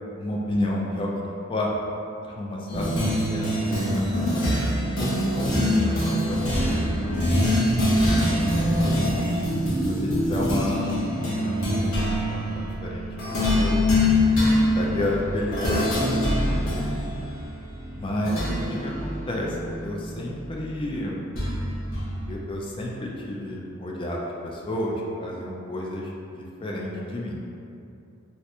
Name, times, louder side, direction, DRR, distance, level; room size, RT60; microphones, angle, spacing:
voice 1, 0.2-1.8 2.2-4.1 5.0-9.2 9.8-13.9 14.7-16.0 16.4-16.9 18.0-18.4 18.7-21.2 22.3-27.4, left 1 dB, 25° left, -3 dB, 0.3 m, -31 dB
sound 1, 2.7-20.5 21.3-22.4, left 1 dB, 85° left, 0.8 m, -24 dB
2.8 x 2.5 x 3.3 m, 2.6 s
head